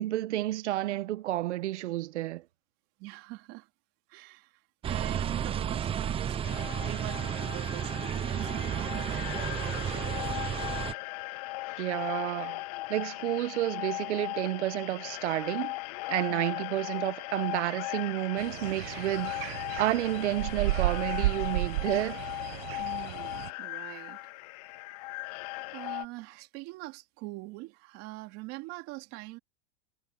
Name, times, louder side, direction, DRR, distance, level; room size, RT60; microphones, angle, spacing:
voice 1, 0.0-2.4 11.8-12.6 12.9-15.7 16.1-22.2, right 15 dB, 75° right, 1.4 m, -30 dB
voice 2, 3.0-3.7 4.1-10.7 16.3-16.7 22.8-24.2 25.0-25.3 25.7-29.4, right 22 dB, 40° right, 3.1 m, -44 dB
sound 1, 4.8-10.9, right 9 dB, 15° right, 1.0 m, -32 dB
sound 2, 6.4-26.1, left 22 dB, 35° left, 0.4 m, -38 dB
sound 3, 18.4-23.5, right 17 dB, 55° right, 1.4 m, -33 dB
supercardioid pair, 155°, 35 cm